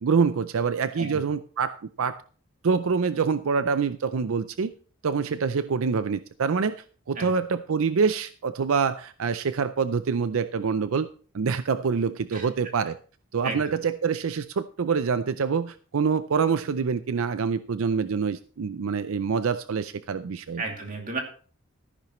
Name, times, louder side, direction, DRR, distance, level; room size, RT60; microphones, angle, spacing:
voice 1, 0.0-2.2 2.6-4.7 5.0-6.8 7.1-11.1 11.3-13.0 13.3-20.6, right 5 dB, 80° right, 13 dB, 0.5 m, -26 dB
voice 2, 13.4-13.8 20.6-21.2, right 3 dB, 40° right, 2 dB, 2.6 m, -33 dB
13.5 x 10.5 x 3.1 m, 0.41 s
head